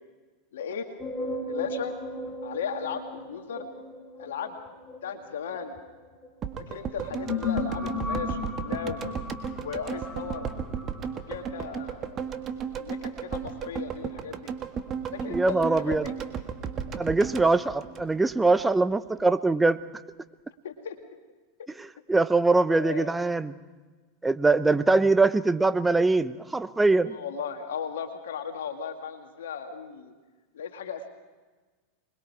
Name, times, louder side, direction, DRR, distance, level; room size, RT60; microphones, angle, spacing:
voice 1, 0.5-0.9 1.5-2.0 2.4-3.7 4.2-4.6 5.0-5.8 6.7-9.1 9.6-10.5 11.1-12.2 12.8-14.5 15.1-16.1 20.6-21.0 22.7-23.1 27.1-30.1 30.5-31.1, left 6 dB, 75° left, 5 dB, 1.9 m, -36 dB
sound 1, 1.0-6.3 6.9-11.8, left 3 dB, 15° left, 4.1 m, -36 dB
sound 2, 6.4-18.6 18.9-19.0, right 7 dB, 35° right, 1.7 m, -34 dB
voice 2, 15.3-16.1 17.0-19.8 21.8-23.5 24.2-27.2, right 3 dB, 10° right, 14 dB, 0.8 m, -23 dB
26.0 x 21.5 x 4.8 m, 1.3 s
hypercardioid pair, 95°, 0 cm